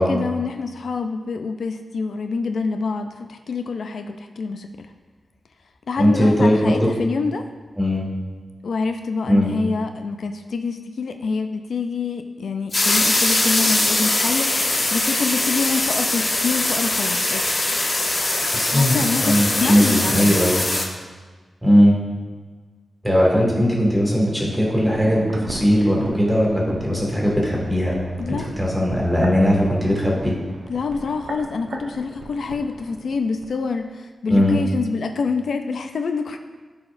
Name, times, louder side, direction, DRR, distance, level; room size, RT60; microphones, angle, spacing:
voice 1, 0.0-4.9 5.9-7.4 8.6-17.5 18.7-20.4 28.2-28.5 30.7-36.4, left 4 dB, 75° left, 6 dB, 0.4 m, -26 dB
voice 2, 6.0-6.9 7.8-8.0 9.3-9.5 18.5-19.0 19.2-20.6 21.6-22.0 23.0-27.9 28.3-30.3 34.3-34.6, equal, 5° right, -4 dB, 2.1 m, -18 dB
sound 1, 12.7-20.9, left 2 dB, 35° left, 1.0 m, -21 dB
sound 2, 24.5-33.5 33.8-33.9, right 2 dB, 85° right, 0.9 m, -37 dB
14.0 x 4.9 x 2.6 m, 1.4 s
wide cardioid pair, 120°, 0 cm